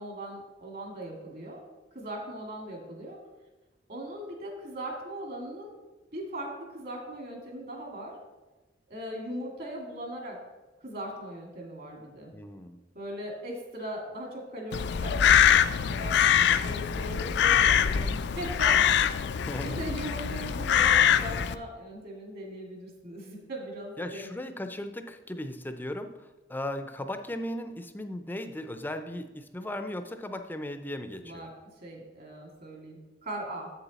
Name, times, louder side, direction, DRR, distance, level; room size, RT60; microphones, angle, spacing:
voice 1, 0.0-1.6 1.9-3.2 3.9-5.7 6.1-8.2 8.9-10.4 10.8-12.3 12.9-15.5 15.9-16.2 16.6-19.0 19.6-24.3 31.2-33.7, right 1 dB, 55° right, 1 dB, 2.1 m, -39 dB
voice 2, 12.3-12.8 19.3-19.8 24.0-31.5, left 1 dB, 10° left, 8 dB, 0.5 m, -37 dB
Crow, 14.7-21.5, left 8 dB, 65° left, 0.4 m, -23 dB
7.8 x 6.9 x 4.1 m, 1.2 s
head